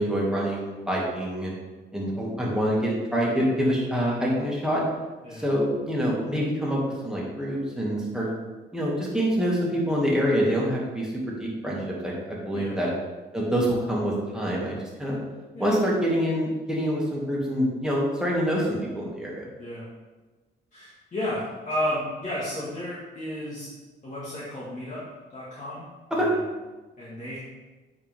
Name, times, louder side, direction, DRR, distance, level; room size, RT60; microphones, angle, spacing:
voice 1, 0.0-1.5 1.9-4.8 5.3-8.3 8.7-12.9 13.3-15.2 15.6-19.5 26.1-26.3, equal, 5° right, -4 dB, 2.1 m, -26 dB
voice 2, 20.7-23.7 24.0-25.0 25.3-25.8 26.1-26.5 27.0-27.4, left 1 dB, 40° left, -8 dB, 2.0 m, -33 dB
8.3 x 4.6 x 3.6 m, 1.2 s
cardioid pair, 90°, 20 cm